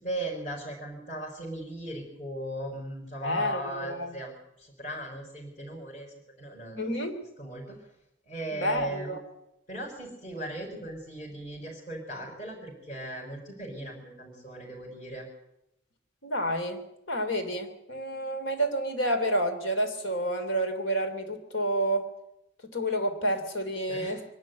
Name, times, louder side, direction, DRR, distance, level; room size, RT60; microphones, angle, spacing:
voice 1, 0.0-6.9 7.4-7.8 8.3-9.1 9.7-15.3 23.9-24.2, right 1 dB, 40° left, -5 dB, 5.0 m, -38 dB
voice 2, 3.2-4.1 6.7-7.2 8.5-9.2 16.2-16.8 17.1-22.1 22.6-24.2, right 1 dB, 80° left, 7 dB, 2.9 m, -29 dB
23.0 x 12.0 x 9.3 m, 0.86 s
head